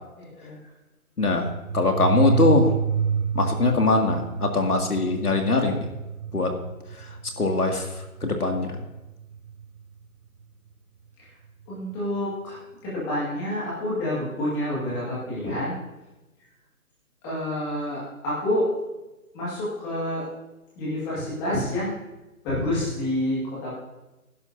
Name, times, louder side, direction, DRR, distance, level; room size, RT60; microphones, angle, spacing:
voice 1, 0.2-0.6 1.7-2.4 11.2-11.3 11.7-12.6 12.8-15.7 17.2-18.7 19.3-20.2 20.8-21.9 22.4-23.8, left 1 dB, 5° left, -8 dB, 2.0 m, -28 dB
voice 2, 1.2-1.5 1.7-2.7 3.3-5.8 6.3-6.5 7.4-7.9 8.2-8.7, left 3 dB, 85° left, 3 dB, 2.4 m, -22 dB
sound 1, 1.4-9.8, right 7 dB, 60° right, 0.7 m, -29 dB
19.5 x 11.0 x 2.7 m, 1.0 s
figure-of-eight pair, 165°, 44 cm